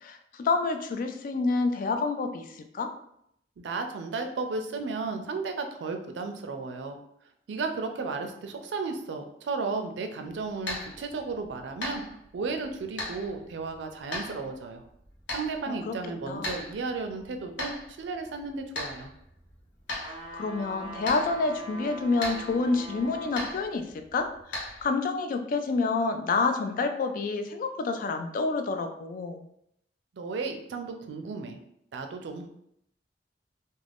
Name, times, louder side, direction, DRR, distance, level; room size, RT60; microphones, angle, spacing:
voice 1, 0.0-2.9 15.7-16.0 16.3-16.6 20.0-29.5, left 3 dB, 50° left, 7 dB, 0.3 m, -28 dB
voice 2, 3.6-7.0 7.5-14.8 15.3-19.1 30.1-31.6 31.9-32.5, right 4 dB, 90° right, 6 dB, 0.4 m, -34 dB
sound 1, 10.3-24.9, left 2 dB, 75° left, 0.8 m, -40 dB
sound 2, 20.0-23.6 24.2-24.3, right 2 dB, 30° right, 0.5 m, -42 dB
2.4 x 2.1 x 3.4 m, 0.74 s
head